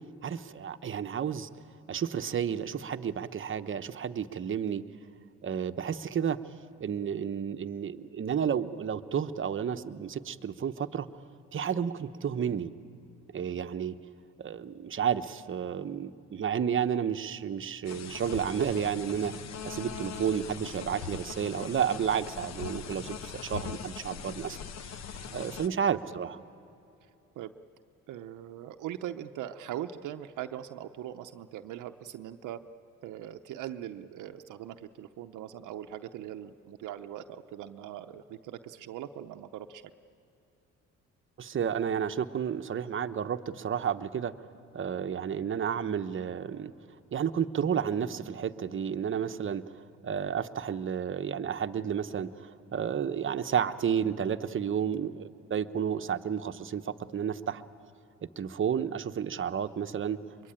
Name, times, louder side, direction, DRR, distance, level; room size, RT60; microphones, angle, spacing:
voice 1, 0.2-1.5 1.9-4.9 5.4-6.4 6.8-11.1 11.5-12.7 13.3-13.9 14.4-19.4 19.6-24.6 24.8-26.4 41.4-44.3 44.7-46.7 47.1-49.8 50.0-57.6 58.4-60.2, right 8 dB, 40° right, 11 dB, 0.9 m, -31 dB
sound 1, 17.9-25.7, left 7 dB, 60° left, 1.0 m, -41 dB
voice 2, 25.3-25.7 27.4-27.5 28.1-32.6 33.0-39.8, right 11 dB, 80° right, 7 dB, 0.7 m, -41 dB
23.0 x 23.0 x 8.9 m, 2.7 s
cardioid pair, 90°, 30 cm